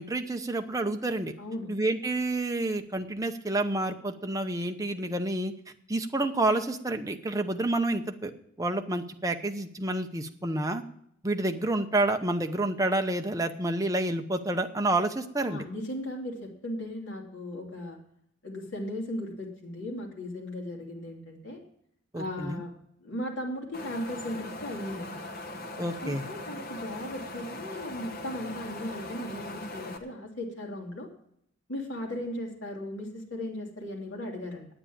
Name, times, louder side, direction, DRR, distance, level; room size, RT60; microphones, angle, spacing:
voice 1, 0.0-1.3 1.7-5.5 5.9-10.8 11.2-15.6 22.1-22.6 25.8-26.2, right 2 dB, 15° right, 5 dB, 0.8 m, -29 dB
voice 2, 1.4-1.7 15.5-18.0 18.4-21.6 22.1-22.7 23.0-25.2 26.0-31.1 31.7-34.7, left 1 dB, 65° left, 0 dB, 3.0 m, -37 dB
Wind, 23.7-30.0, left 2 dB, 45° left, 1.1 m, -40 dB
9.7 x 8.9 x 8.6 m, 0.71 s
head